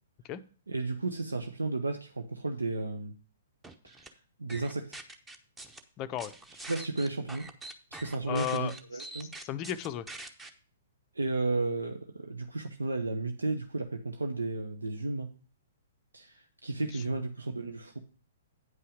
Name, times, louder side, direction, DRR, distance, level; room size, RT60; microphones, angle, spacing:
voice 1, 0.7-3.1 3.8-4.0 4.4-5.0 6.7-7.4 7.9-9.3 11.2-15.3 16.1-18.0, right 3 dB, 80° right, 6 dB, 0.8 m, -33 dB
sound 1, 3.6-4.1 4.5-5.8 6.2-10.5, right 2 dB, 10° right, 0.9 m, -44 dB
voice 2, 6.0-6.3 8.3-8.8 9.2-10.1 16.9-17.3, left 11 dB, 30° left, 10 dB, 0.5 m, -35 dB
9.5 x 5.6 x 4.9 m, 0.40 s
figure-of-eight pair, 115°, 0 cm